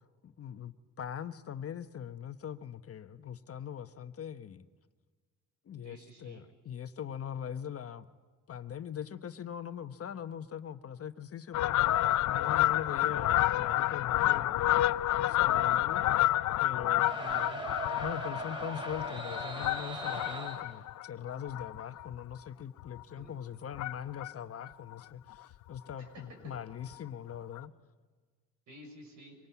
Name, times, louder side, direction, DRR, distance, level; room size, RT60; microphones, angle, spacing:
voice 1, 0.2-4.7 5.6-8.1 8.5-16.3 16.6-17.1 18.0-27.7, left 9 dB, 50° left, 9 dB, 1.2 m, -42 dB
voice 2, 5.8-6.4 17.2-17.6 23.1-23.4 26.0-26.5 28.7-29.4, right 2 dB, 75° right, 4 dB, 6.8 m, -51 dB
Fowl, 11.5-22.3 22.8-23.0 23.7-24.3 24.6-24.7 24.9-25.0 25.3-25.4 25.7-25.9 26.9-27.0 27.6-27.7, left 14 dB, 70° left, 0.6 m, -29 dB
sound 1, 17.0-20.7, right 2 dB, 15° right, 5.0 m, -40 dB
25.0 x 19.0 x 8.4 m, 1.5 s
cardioid pair, 90°, 30 cm